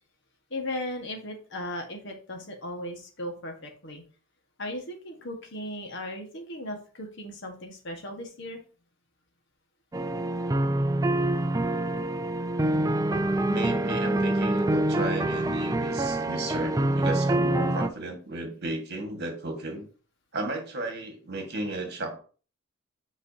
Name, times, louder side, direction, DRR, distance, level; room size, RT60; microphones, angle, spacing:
voice 1, 0.5-4.0 4.6-8.6, left 1 dB, 55° left, 3 dB, 1.5 m, -37 dB
sound 1, 9.9-17.9, right 1 dB, 15° right, 0.4 m, -26 dB
voice 2, 13.5-19.8 20.3-22.2, right 2 dB, 50° right, 3 dB, 1.7 m, -34 dB
8.2 x 5.8 x 2.8 m, 0.38 s
head